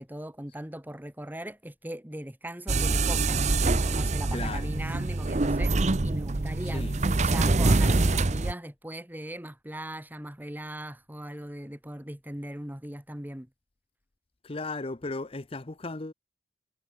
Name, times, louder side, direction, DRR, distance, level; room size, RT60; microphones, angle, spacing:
voice 1, 0.0-3.4 3.6-13.5, right 1 dB, 10° right, 1.8 m, -39 dB
sound 1, 2.7-8.5, right 3 dB, 40° right, 0.8 m, -25 dB
voice 2, 4.3-4.7 6.7-6.9 14.4-16.1, left 3 dB, 30° left, 0.8 m, -35 dB
head